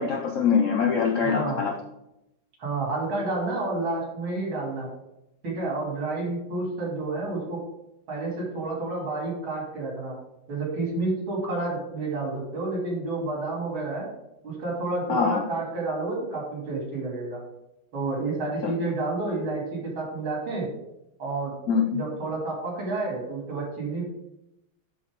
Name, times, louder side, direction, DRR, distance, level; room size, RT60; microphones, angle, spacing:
voice 1, 0.0-1.7 15.1-15.4 18.6-18.7 21.7-21.9, left 6 dB, 80° left, 3 dB, 0.7 m, -23 dB
voice 2, 1.2-1.6 2.6-4.9 5.4-7.6 8.1-10.2 10.5-14.1 14.4-17.4 17.9-20.7 21.2-21.5 21.9-24.0, right 2 dB, 85° right, -2 dB, 3.4 m, -30 dB
12.0 x 4.3 x 3.6 m, 0.86 s
omnidirectional pair, 2.2 m